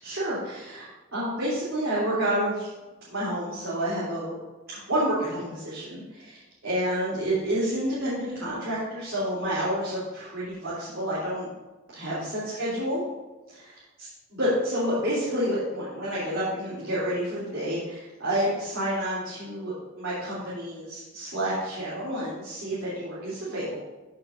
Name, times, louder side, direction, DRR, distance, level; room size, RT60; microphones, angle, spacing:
voice 1, 0.0-2.7 3.1-4.3 4.7-11.5 11.9-13.0 13.5-13.7 14.3-23.8, equal, 80° right, -10 dB, 3.2 m, -29 dB
14.5 x 6.4 x 2.6 m, 1.2 s
head